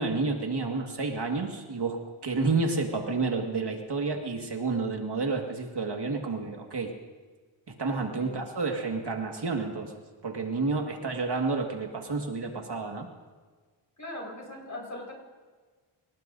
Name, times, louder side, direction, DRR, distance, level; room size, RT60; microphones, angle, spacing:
voice 1, 0.0-6.9 7.7-9.9 10.2-13.1, right 3 dB, 50° right, 2 dB, 1.8 m, -30 dB
voice 2, 14.0-15.1, left 1 dB, 35° left, -1 dB, 4.7 m, -40 dB
24.5 x 18.5 x 2.6 m, 1.4 s
wide cardioid pair, 95°, 49 cm